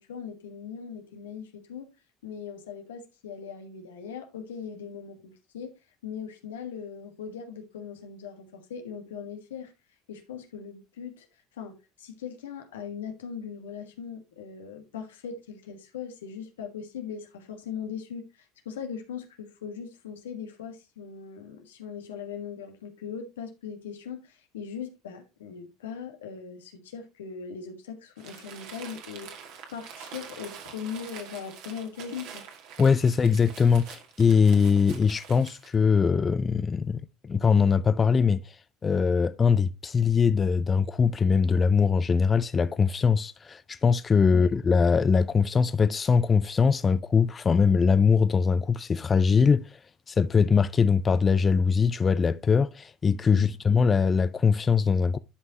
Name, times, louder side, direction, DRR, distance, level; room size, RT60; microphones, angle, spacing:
voice 1, 0.0-1.9 2.2-5.7 6.0-9.7 10.1-11.3 11.6-29.3 29.7-32.4 44.3-44.5 53.3-53.5, left 7 dB, 85° left, 1.5 m, -39 dB
Crumpling crinkling, 28.2-35.8, right 7 dB, 65° right, 2.1 m, -45 dB
voice 2, 32.8-49.8 50.1-55.2, left 5 dB, 30° left, 0.4 m, -22 dB
11.5 x 5.4 x 2.9 m
hypercardioid pair, 80°, 0 cm